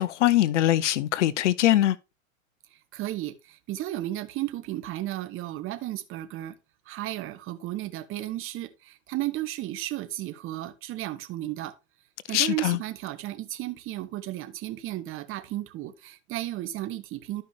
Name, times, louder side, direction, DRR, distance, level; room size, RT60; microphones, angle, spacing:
voice 1, 0.0-2.0 12.3-12.8, left 13 dB, 60° left, 0.7 m, -22 dB
voice 2, 2.7-6.6 6.8-11.7 12.3-17.4, right 15 dB, 30° right, 1.2 m, -34 dB
12.5 x 5.5 x 2.7 m
hypercardioid pair, 105°, 41 cm